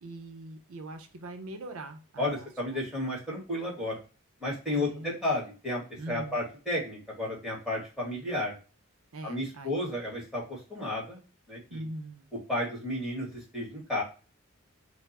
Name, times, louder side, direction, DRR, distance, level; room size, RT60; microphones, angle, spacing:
voice 1, 0.0-2.5 4.7-5.2 6.0-6.4 9.1-9.9 11.7-12.3, right 1 dB, 80° right, 6 dB, 0.6 m, -41 dB
voice 2, 2.2-4.0 4.4-5.8 6.1-8.6 9.2-11.2 11.5-11.9 12.5-14.0, left 1 dB, ahead, -4 dB, 1.6 m, -32 dB
4.4 x 2.0 x 4.0 m, 0.34 s
head